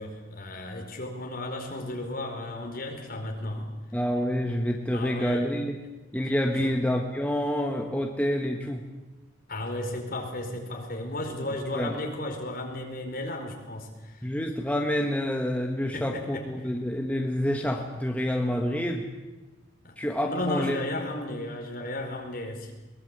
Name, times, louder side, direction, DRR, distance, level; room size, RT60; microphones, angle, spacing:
voice 1, 0.0-3.7 4.9-5.5 6.6-6.7 9.5-14.3 15.9-16.4 19.8-20.0 20.2-22.7, left 1 dB, 50° left, 2 dB, 4.8 m, -34 dB
voice 2, 3.9-5.7 6.1-8.8 11.7-11.9 14.2-19.0 20.0-20.8, equal, 10° left, 2 dB, 1.5 m, -28 dB
22.0 x 20.5 x 8.2 m, 1.1 s
head